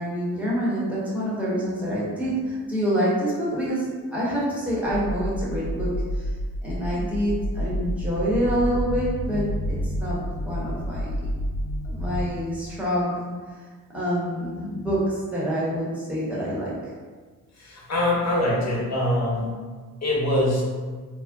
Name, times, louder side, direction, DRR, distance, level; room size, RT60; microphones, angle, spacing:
voice 1, 0.0-6.3 6.6-11.1 11.8-13.3 13.9-16.8, equal, 5° right, -8 dB, 0.9 m, -27 dB
sound 1, 4.8-12.3, equal, 80° left, 0.5 m, -29 dB
voice 2, 17.5-19.5 20.0-20.6, left 1 dB, 50° left, -5 dB, 0.9 m, -23 dB
2.4 x 2.1 x 3.4 m, 1.4 s
cardioid pair, 115°, 34 cm